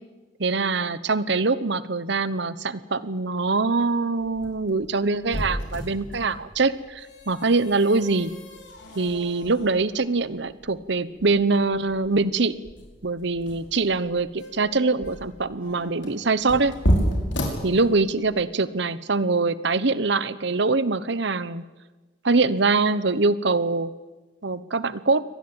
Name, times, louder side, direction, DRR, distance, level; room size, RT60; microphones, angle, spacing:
voice 1, 0.4-8.3 8.9-12.5 13.0-16.7 17.6-21.6 22.2-23.9 24.4-25.2, right 3 dB, 60° right, 16 dB, 1.0 m, -23 dB
sound 1, 4.2-18.3, equal, 60° left, 5.8 m, -32 dB
24.0 x 18.5 x 8.9 m, 1.2 s
head